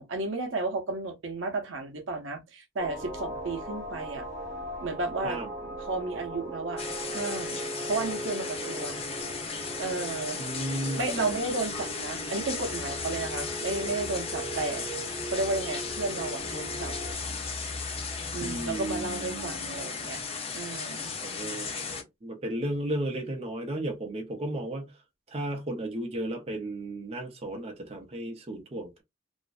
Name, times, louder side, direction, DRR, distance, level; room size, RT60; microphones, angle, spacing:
voice 1, 0.0-4.3 4.8-6.8 7.1-7.6 7.9-9.0 9.8-10.4 10.9-14.9 15.3-16.9 18.3-20.2 20.5-21.1, right 3 dB, 85° right, 0.6 m, -33 dB
sound 1, 2.8-17.1, right 2 dB, 15° right, 1.0 m, -39 dB
sound 2, 6.8-22.0, left 5 dB, 30° left, 0.5 m, -36 dB
voice 2, 10.4-11.4 18.4-19.8 21.2-24.9 25.3-29.0, right 1 dB, 35° right, 0.5 m, -34 dB
2.5 x 2.1 x 2.4 m
head